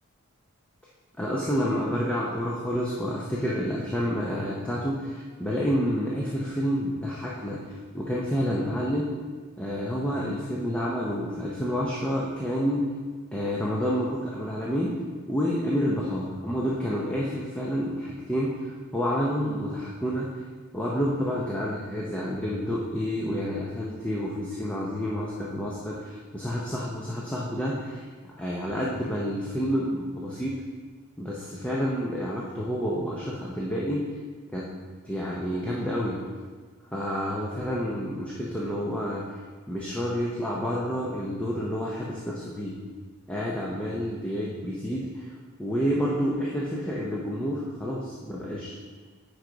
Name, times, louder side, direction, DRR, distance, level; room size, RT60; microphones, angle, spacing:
voice 1, 1.2-7.6 7.9-9.1 9.6-12.9 13.3-15.0 15.3-20.3 20.7-28.0 28.4-30.5 31.2-34.0 34.5-34.7 35.0-36.2 36.9-39.2 39.7-42.8 43.3-45.3 45.6-48.7, equal, 5° left, -5 dB, 0.7 m, -29 dB
9.5 x 4.8 x 3.9 m, 1.5 s
head